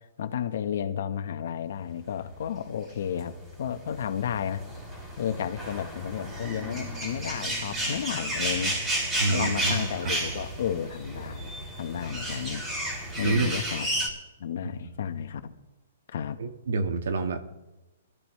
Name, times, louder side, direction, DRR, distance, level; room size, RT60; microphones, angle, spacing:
voice 1, 0.2-4.6 5.2-8.8 9.3-12.6 13.2-14.1 14.4-15.5 16.1-16.4, left 8 dB, 60° left, 9 dB, 1.2 m, -32 dB
sound 1, 3.0-14.1, right 1 dB, 15° right, 3.3 m, -32 dB
Bass guitar, 6.4-10.3, right 2 dB, ahead, 1.9 m, -49 dB
voice 2, 9.2-10.2 13.2-13.6 14.6-14.7 16.4-17.5, right 3 dB, 75° right, 7 dB, 1.6 m, -28 dB
21.0 x 14.0 x 3.2 m, 1.0 s
hypercardioid pair, 160°, 0 cm